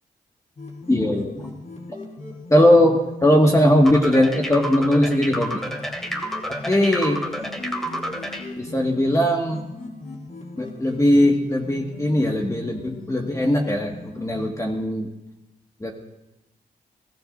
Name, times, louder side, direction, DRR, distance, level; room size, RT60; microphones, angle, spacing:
sound 1, 0.6-14.5, left 3 dB, 50° left, 4.6 m, -39 dB
voice 1, 0.9-1.4 2.5-5.6 6.7-7.2 8.6-9.6 10.6-15.1 15.8-15.9, left 1 dB, 20° left, 0 dB, 1.9 m, -19 dB
sound 2, 3.8-8.5, equal, ahead, 2.6 m, -30 dB
22.0 x 16.5 x 2.7 m, 0.95 s
cardioid pair, 60°, 16 cm